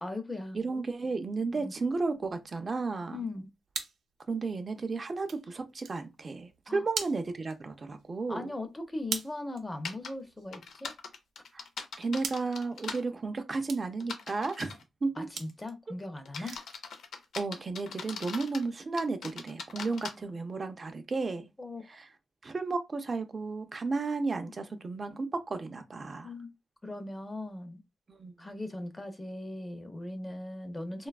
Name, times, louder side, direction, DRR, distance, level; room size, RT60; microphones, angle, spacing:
voice 1, 0.0-0.6 1.5-1.7 3.1-3.5 6.7-6.8 8.3-10.9 15.2-16.6 21.6-22.0 24.7-24.8 26.2-26.5 26.8-27.8 28.4-31.1, left 2 dB, 15° left, 0.5 m, -39 dB
voice 2, 0.5-3.2 4.3-8.5 11.5-11.7 12.0-15.3 16.4-16.5 17.4-21.5 21.9-22.1 22.4-26.3 28.1-28.3, right 3 dB, 35° right, 0.4 m, -33 dB
sound 1, 2.0-13.3 13.7-13.9 14.3-14.7 15.4-15.6 16.0-16.1 16.4-16.8 17.1-17.3 17.7-17.8 18.2-18.3, right 6 dB, 90° right, 0.5 m, -43 dB
sound 2, 9.8-10.1 10.5-13.0 14.0-14.8 15.4-15.7 16.2-18.7 19.0-20.1, left 5 dB, 85° left, 0.4 m, -41 dB
3.2 x 2.2 x 2.2 m
wide cardioid pair, 115°, 0 cm